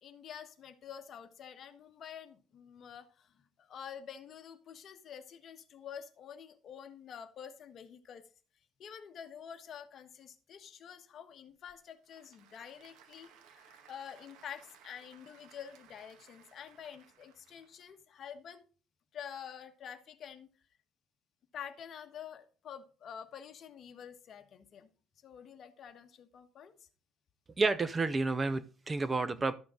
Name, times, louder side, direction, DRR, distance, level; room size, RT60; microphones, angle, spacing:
voice 1, 0.0-8.3 8.8-18.6 19.1-20.5 21.5-24.9 25.2-26.9, left 8 dB, 45° left, 7 dB, 1.4 m, -48 dB
Applause / Crowd, 11.5-18.0, right 8 dB, 80° right, 1.7 m, -61 dB
voice 2, 27.6-29.5, right 3 dB, 20° right, 15 dB, 0.5 m, -30 dB
12.5 x 6.9 x 3.8 m, 0.38 s
cardioid pair, 150°, 0 cm